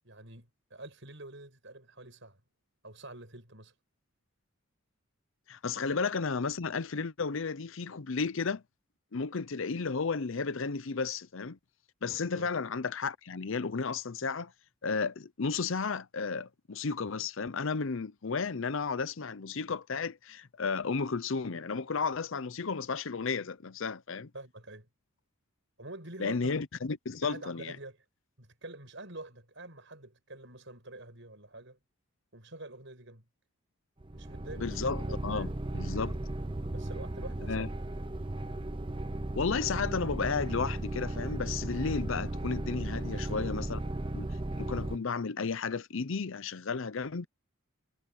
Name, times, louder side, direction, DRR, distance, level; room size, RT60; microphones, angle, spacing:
voice 1, 0.0-2.4 2.8-3.7 12.3-12.5 24.3-24.9 25.8-26.5 27.2-28.0 28.4-31.8 32.3-33.3 34.1-34.7 35.3-35.6 36.7-37.8 43.0-43.5 43.7-43.9, right 2 dB, 55° right, 7.4 m, -47 dB
voice 2, 5.5-8.6 9.1-11.6 12.0-14.5 14.8-24.3 26.2-27.8 34.6-36.2 37.5-37.7 39.4-43.8 44.1-47.3, left 5 dB, 60° left, 0.6 m, -33 dB
sound 1, 34.0-45.0, right 1 dB, 20° right, 0.6 m, -35 dB
head